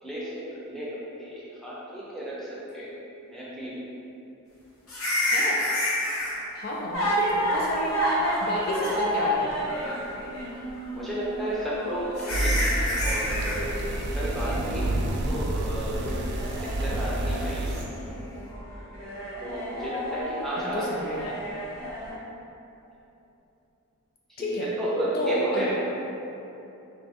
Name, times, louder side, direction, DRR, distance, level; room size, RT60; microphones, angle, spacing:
voice 1, 0.0-2.9 3.3-3.8 6.3-6.5 10.9-12.7 13.0-13.7 14.1-16.2 16.5-17.7 19.4-20.9 24.3-24.5 24.8-25.7, right 1 dB, ahead, -8 dB, 0.6 m, -33 dB
sound 1, 4.9-6.3 8.0-8.5 8.8-8.9 9.6-10.1 11.5-11.6 12.2-13.6 17.7-17.9, left 1 dB, 85° left, 0.8 m, -28 dB
voice 2, 5.3-5.6 6.5-8.0 8.4-9.7 20.6-21.4 24.4-24.7 25.1-25.7, equal, 45° left, -3 dB, 0.3 m, -31 dB
sound 2, 6.9-22.1, equal, 65° left, 1.2 m, -32 dB
sound 3, 12.3-17.8, right 1 dB, 50° right, 0.3 m, -29 dB
4.1 x 2.6 x 3.4 m, 2.9 s
head